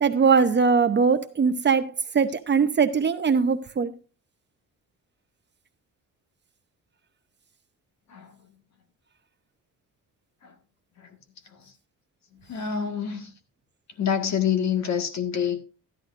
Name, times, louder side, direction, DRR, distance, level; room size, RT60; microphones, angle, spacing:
voice 1, 0.0-3.9, right 5 dB, 35° right, 0.7 m, -21 dB
voice 2, 12.5-13.3 14.0-15.6, left 8 dB, 55° left, 1.7 m, -27 dB
13.5 x 10.5 x 2.5 m
cardioid pair, 120°, 34 cm